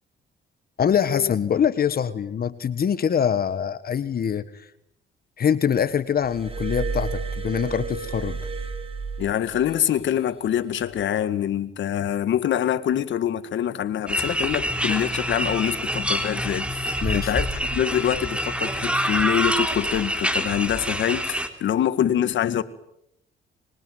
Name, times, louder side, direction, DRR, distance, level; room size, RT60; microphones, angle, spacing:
voice 1, 0.8-4.7 5.4-8.4 17.0-17.3, left 8 dB, 50° left, 1.5 m, -24 dB
Glass, 6.2-9.8 10.8-11.0, right 4 dB, 30° right, 3.8 m, -31 dB
voice 2, 9.2-22.6, left 10 dB, 70° left, 1.8 m, -25 dB
sound 1, 14.1-21.5, equal, 5° right, 3.6 m, -26 dB
25.5 x 23.0 x 9.3 m
cardioid pair, 90°, 20 cm